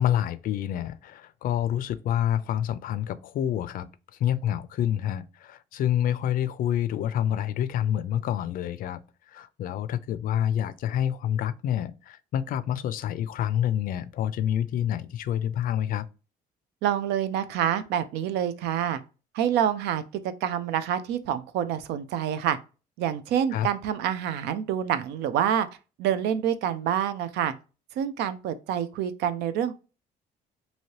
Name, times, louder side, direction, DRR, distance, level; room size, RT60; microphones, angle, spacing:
voice 1, 0.0-3.9 4.2-9.0 9.3-16.1 23.5-23.7, left 10 dB, 55° left, 0.4 m, -27 dB
voice 2, 16.8-19.0 19.3-20.0 20.4-22.6 23.0-25.7 26.0-27.5 28.0-29.7, right 9 dB, 80° right, 0.5 m, -27 dB
3.1 x 2.7 x 2.8 m
cardioid pair, 110°, 17 cm